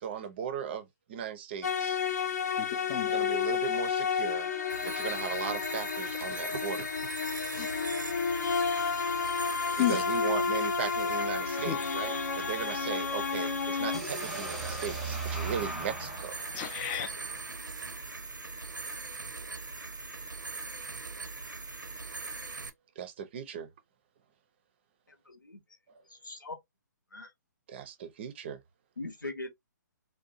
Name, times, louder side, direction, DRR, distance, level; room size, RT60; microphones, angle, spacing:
voice 1, 0.0-2.0 3.1-4.5 4.8-6.9 9.9-16.4 23.0-23.7 25.9-26.0 27.7-28.6, right 8 dB, 35° right, 0.5 m, -37 dB
sound 1, 1.6-14.0, left 6 dB, 60° left, 0.6 m, -31 dB
voice 2, 2.6-3.2 7.5-7.7 8.5-9.0 9.7-10.0 11.7-11.8 16.5-17.1, left 11 dB, 20° left, 0.4 m, -33 dB
sound 2, 4.7-22.7, right 3 dB, 80° right, 0.6 m, -41 dB
sound 3, 13.9-17.8, right 3 dB, ahead, 0.8 m, -38 dB
voice 3, 25.1-25.6 26.1-26.6 27.1-27.3 29.0-29.5, left 2 dB, 80° left, 0.9 m, -41 dB
2.6 x 2.2 x 2.5 m
figure-of-eight pair, 130°, 10 cm